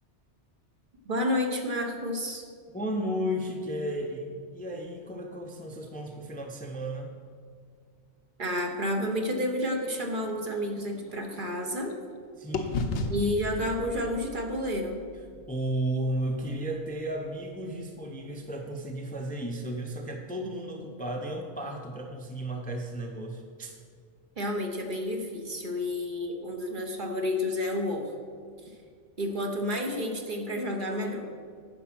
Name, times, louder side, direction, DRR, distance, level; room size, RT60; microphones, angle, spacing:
voice 1, 1.0-2.5 8.4-11.9 13.1-15.0 24.4-28.1 28.6-28.7 29.2-31.3, left 1 dB, 45° right, 2 dB, 1.0 m, -30 dB
voice 2, 2.7-7.1 12.4-13.0 15.5-23.7, right 1 dB, 10° left, 2 dB, 0.6 m, -34 dB
sound 1, 9.8-12.2 12.5-16.5, left 3 dB, 70° left, 1.0 m, -37 dB
10.0 x 5.2 x 6.0 m, 2.1 s
omnidirectional pair, 1.2 m